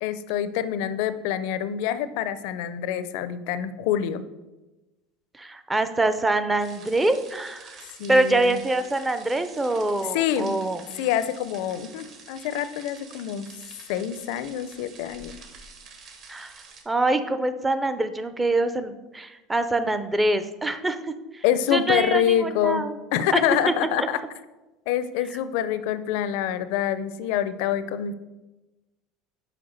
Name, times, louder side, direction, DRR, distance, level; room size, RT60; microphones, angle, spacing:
voice 1, 0.0-4.2 8.0-8.6 10.1-10.6 11.0-13.5 13.9-15.4 21.4-22.9 23.1-24.2 24.9-28.1, left 10 dB, 70° left, 13 dB, 0.5 m, -26 dB
voice 2, 5.3-7.8 8.1-10.8 16.3-16.5 16.9-21.4 21.7-23.0 23.3-23.4 24.0-24.1, right 2 dB, 10° right, 10 dB, 0.5 m, -25 dB
sound 1, 6.6-16.8, right 4 dB, 45° right, 1.3 m, -47 dB
5.8 x 4.7 x 6.4 m, 1.1 s
supercardioid pair, 140°, 0 cm